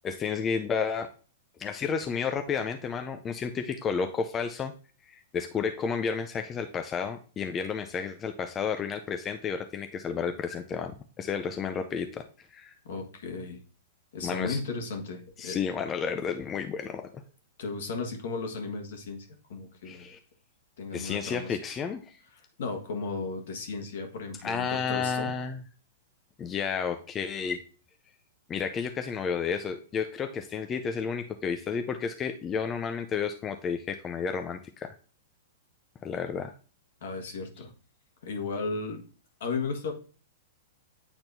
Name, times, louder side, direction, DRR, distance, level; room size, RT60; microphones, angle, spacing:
voice 1, 0.0-1.1 1.6-4.7 5.1-12.2 12.5-12.7 14.2-14.6 15.4-17.0 19.8-20.2 20.9-22.0 24.4-25.6 26.4-27.6 28.5-34.9 36.0-36.5, left 6 dB, 25° left, 6 dB, 0.5 m, -31 dB
voice 2, 12.8-13.6 14.1-15.6 17.6-20.0 20.8-21.6 22.6-25.3 37.0-37.7 38.2-39.0 39.4-39.9, left 4 dB, 70° left, 4 dB, 1.5 m, -35 dB
8.9 x 4.3 x 2.6 m, 0.38 s
hypercardioid pair, 120°, 0 cm